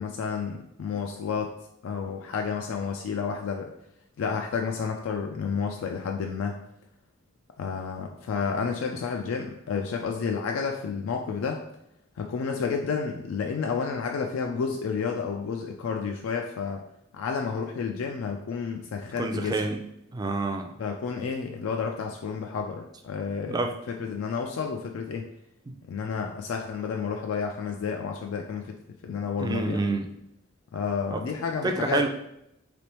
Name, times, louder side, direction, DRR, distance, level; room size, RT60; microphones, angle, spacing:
voice 1, 0.0-1.5 1.8-3.7 4.2-6.6 7.6-11.6 12.2-16.8 17.1-19.6 20.8-23.6 23.9-25.3 25.9-28.8 29.0-29.8 30.7-32.0, left 5 dB, 85° left, 3 dB, 0.3 m, -30 dB
voice 2, 19.2-19.8 20.1-20.7 23.5-23.8 25.7-25.8 29.4-30.0 31.1-31.2 31.6-32.1, right 3 dB, 20° right, 4 dB, 0.3 m, -28 dB
3.4 x 3.0 x 2.9 m, 0.78 s
head